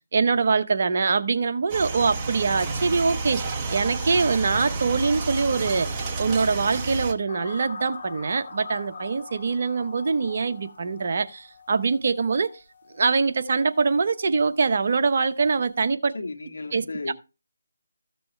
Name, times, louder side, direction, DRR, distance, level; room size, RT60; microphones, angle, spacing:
voice 1, 0.1-3.4 3.7-12.5 12.9-16.1 16.7-17.1, right 4 dB, 50° right, 0.9 m, -23 dB
sound 1, 1.7-7.1, right 3 dB, 15° right, 1.1 m, -30 dB
sound 2, 7.3-14.5 14.8-15.1, left 4 dB, 35° left, 5.6 m, -43 dB
voice 2, 16.1-17.1, left 3 dB, 65° left, 1.7 m, -34 dB
14.5 x 6.8 x 3.3 m
figure-of-eight pair, 165°, 0 cm